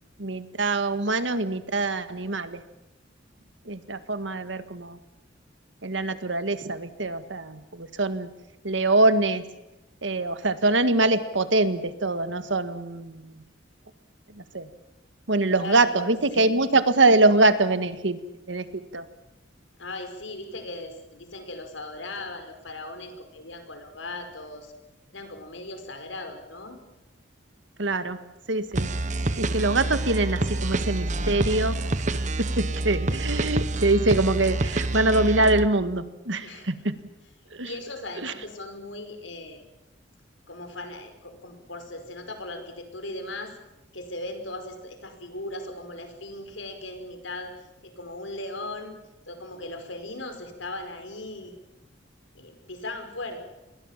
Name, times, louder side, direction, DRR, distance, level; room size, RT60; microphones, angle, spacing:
voice 1, 0.2-2.6 3.6-5.0 5.8-8.3 8.6-9.4 10.0-13.4 14.5-14.7 15.3-18.2 18.5-19.1 27.8-28.2 28.5-28.9 29.4-31.8 32.4-36.9 37.5-37.7 38.2-38.3, right 2 dB, 75° right, 11 dB, 1.8 m, -24 dB
voice 2, 15.5-16.5 19.8-24.7 25.1-26.8 36.4-36.7 37.6-39.6 40.5-43.5 43.9-47.5 47.8-49.0 49.2-51.5 52.3-53.5, left 2 dB, 85° left, 7 dB, 5.2 m, -38 dB
sound 1, 28.7-35.7, right 2 dB, 40° right, 1.1 m, -27 dB
28.5 x 21.5 x 7.4 m, 0.94 s
head